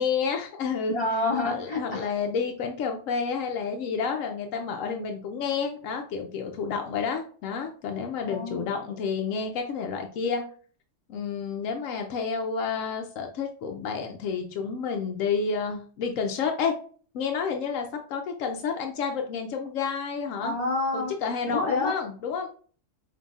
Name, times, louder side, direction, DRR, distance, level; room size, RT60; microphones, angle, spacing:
voice 1, 0.0-1.0 1.4-10.4 11.1-16.7 17.1-20.6 20.9-22.5, left 5 dB, 90° left, 3 dB, 1.0 m, -30 dB
voice 2, 0.9-2.1 8.3-8.7 20.4-21.1 21.5-21.9, left 2 dB, 45° left, 0 dB, 1.6 m, -28 dB
5.3 x 2.8 x 2.3 m, 0.43 s
omnidirectional pair, 1.3 m